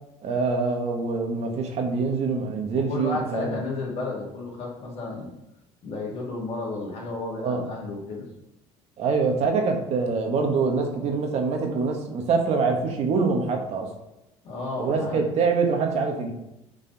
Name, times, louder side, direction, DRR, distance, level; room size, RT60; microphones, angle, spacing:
voice 1, 0.2-3.6 7.4-7.6 9.0-13.9 14.8-16.3, right 4 dB, 60° right, 3 dB, 1.4 m, -25 dB
voice 2, 2.7-5.3 5.8-8.3 14.4-15.3, left 3 dB, 55° left, -2 dB, 2.4 m, -32 dB
7.6 x 4.1 x 4.0 m, 0.87 s
supercardioid pair, 80°, 13 cm